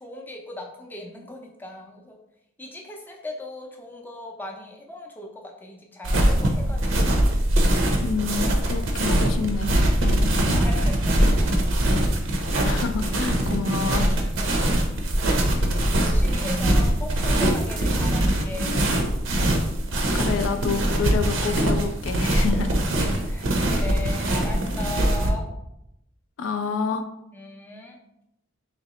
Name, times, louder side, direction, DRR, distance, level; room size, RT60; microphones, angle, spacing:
voice 1, 0.0-2.2 2.6-5.3 5.6-7.1 10.6-11.0 11.4-11.5 14.4-14.7 16.0-18.8 22.9-25.5 27.3-28.0, left 2 dB, 10° left, 0 dB, 0.5 m, -38 dB
sound 1, 6.0-25.3, right 1 dB, 75° right, 0.6 m, -22 dB
voice 2, 8.0-10.4 12.6-14.1 18.6-19.1 20.1-22.7 26.4-27.1, left 5 dB, 70° left, 7 dB, 0.3 m, -28 dB
3.9 x 3.1 x 2.9 m, 0.84 s
head